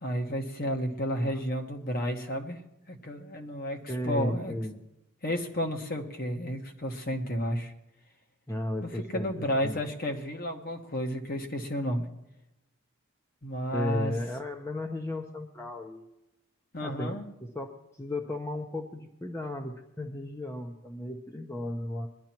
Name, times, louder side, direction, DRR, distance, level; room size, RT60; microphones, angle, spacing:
voice 1, 0.0-2.6 2.9-4.5 5.2-7.7 8.8-12.0 13.4-14.1 16.7-17.3, equal, 45° left, 3 dB, 1.3 m, -32 dB
voice 2, 3.9-4.8 8.5-9.8 13.7-16.1 16.8-22.1, left 1 dB, 15° left, 3 dB, 0.8 m, -35 dB
21.5 x 11.5 x 3.0 m, 0.92 s
head